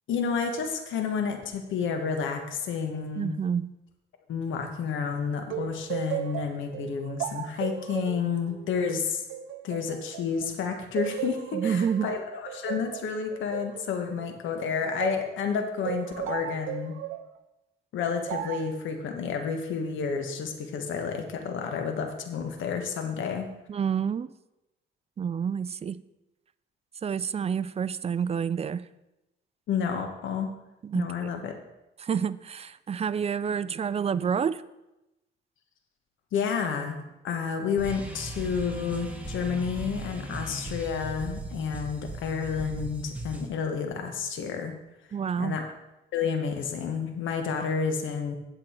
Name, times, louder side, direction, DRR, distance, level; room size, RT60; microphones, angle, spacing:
voice 1, 0.1-3.3 4.3-9.2 9.6-17.0 17.9-23.5 29.7-30.5 30.9-31.5 36.3-37.0 37.2-44.7 45.4-45.7 46.1-48.4, left 6 dB, 75° left, 5 dB, 1.3 m, -30 dB
voice 2, 3.2-3.7 11.5-12.1 23.7-24.3 25.2-26.0 27.0-28.8 30.8-31.3 32.0-34.6 45.1-45.6, right 7 dB, 30° right, 16 dB, 0.4 m, -28 dB
sound 1, 5.5-10.5 11.0-15.3 15.8-17.3 18.3-18.7, right 10 dB, 80° right, 0.6 m, -35 dB
sound 2, 37.8-43.5, right 2 dB, 5° right, 1.4 m, -38 dB
8.4 x 7.7 x 4.4 m, 0.95 s
cardioid pair, 90°, 20 cm